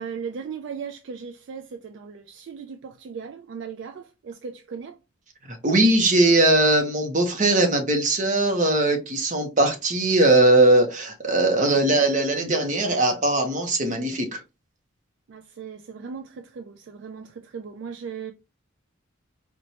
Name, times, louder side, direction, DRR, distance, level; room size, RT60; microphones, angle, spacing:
voice 1, 0.0-5.0 15.3-18.3, right 6 dB, 55° right, 0.3 m, -37 dB
voice 2, 5.6-14.4, right 2 dB, 35° right, 0.7 m, -20 dB
4.3 x 2.2 x 2.7 m
head